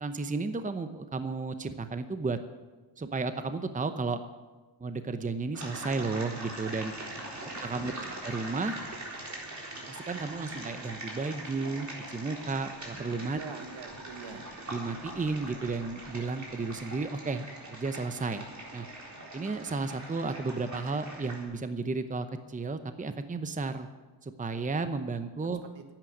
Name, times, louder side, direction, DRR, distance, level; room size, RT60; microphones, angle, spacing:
voice 1, 0.0-2.4 3.0-4.2 4.8-6.9 7.6-8.8 9.9-11.9 12.1-13.4 14.7-18.4 18.7-18.9 19.3-23.9 24.2-25.6, right 3 dB, 15° right, 9 dB, 0.8 m, -33 dB
sound 1, 5.5-21.4, right 2 dB, 35° right, 3.9 m, -42 dB
voice 2, 7.4-8.1 13.3-14.4 25.7-25.8, right 6 dB, 70° right, 6 dB, 1.7 m, -45 dB
11.0 x 9.1 x 9.3 m, 1.2 s
cardioid pair, 95°, 47 cm